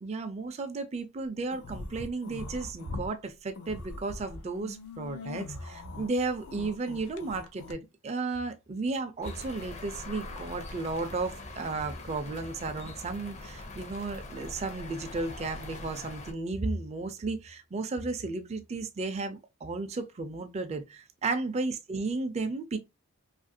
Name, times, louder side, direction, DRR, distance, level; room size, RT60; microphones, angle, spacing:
voice 1, 0.0-22.8, right 3 dB, 30° right, 0.4 m, -34 dB
sound 1, 1.5-3.1 3.5-7.7, left 3 dB, 85° left, 0.5 m, -42 dB
sound 2, 9.2-16.3, left 2 dB, 30° left, 0.5 m, -43 dB
2.7 x 2.4 x 2.6 m
head